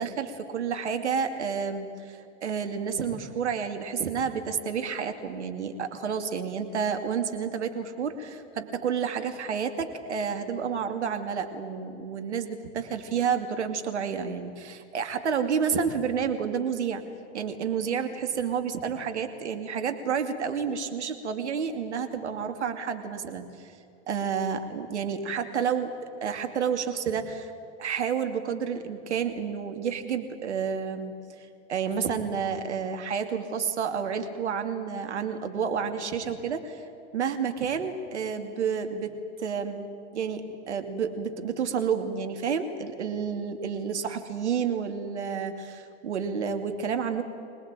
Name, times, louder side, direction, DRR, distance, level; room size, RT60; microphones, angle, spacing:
voice 1, 0.0-17.0 17.3-23.7 24.1-27.5 27.8-31.1 31.4-36.8 37.1-39.9 40.1-47.2, right 6 dB, 85° right, 7 dB, 2.6 m, -30 dB
26.0 x 19.0 x 9.0 m, 2.5 s
hypercardioid pair, 95°, 34 cm